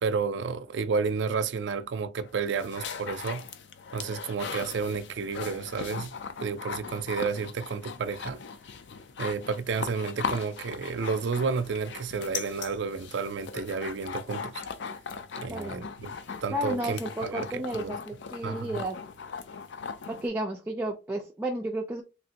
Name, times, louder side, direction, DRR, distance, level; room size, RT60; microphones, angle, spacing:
voice 1, 0.0-3.4 3.9-6.1 6.4-8.4 9.2-14.6 15.4-16.1 16.4-17.9 18.4-18.8, right 5 dB, 85° right, 0.4 m, -31 dB
sound 1, 2.2-20.3, left 6 dB, 85° left, 0.4 m, -39 dB
voice 2, 15.5-15.9 16.5-19.0 20.1-22.0, right 1 dB, 10° right, 0.5 m, -32 dB
3.2 x 2.5 x 2.8 m
head